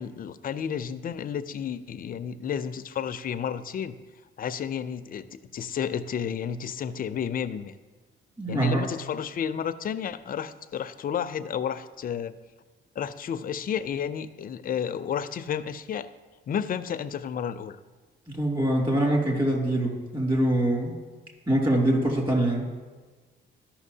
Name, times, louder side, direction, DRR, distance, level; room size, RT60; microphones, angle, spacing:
voice 1, 0.0-4.0 4.4-5.3 5.5-7.7 8.5-12.3 13.0-16.1 16.5-17.8, left 8 dB, 45° left, 12 dB, 0.5 m, -31 dB
voice 2, 8.4-8.9 18.3-21.0 21.5-22.7, right 1 dB, 25° right, -1 dB, 2.5 m, -24 dB
13.5 x 5.8 x 2.7 m, 1.4 s
cardioid pair, 90°, 20 cm